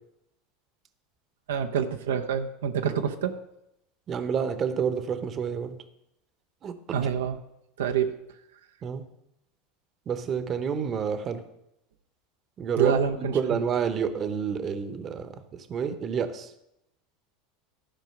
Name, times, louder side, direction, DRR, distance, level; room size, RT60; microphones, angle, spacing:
voice 1, 1.5-3.3 6.9-7.4 7.8-8.1 12.8-13.6, right 8 dB, 85° right, 6 dB, 0.6 m, -27 dB
voice 2, 4.1-5.8 6.6-6.8 8.8-9.0 10.1-11.4 12.6-12.9 13.2-15.3 15.7-16.5, right 7 dB, 35° right, 11 dB, 0.9 m, -28 dB
12.5 x 4.9 x 5.8 m, 0.83 s
hypercardioid pair, 95°, 0 cm